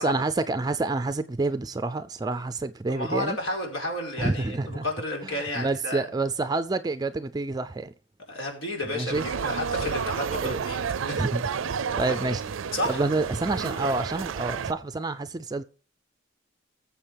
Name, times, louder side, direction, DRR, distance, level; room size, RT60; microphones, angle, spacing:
voice 1, 0.0-3.4 4.2-4.8 5.4-7.9 8.9-9.3 10.4-10.6 11.1-15.6, right 3 dB, 20° right, 0.4 m, -28 dB
voice 2, 2.9-6.1 8.3-10.8 11.1-11.3 12.1-12.2 12.7-13.0, left 1 dB, 85° left, 4.9 m, -31 dB
sound 1, 9.1-14.7, right 6 dB, 85° right, 0.5 m, -31 dB
20.0 x 7.2 x 3.4 m
head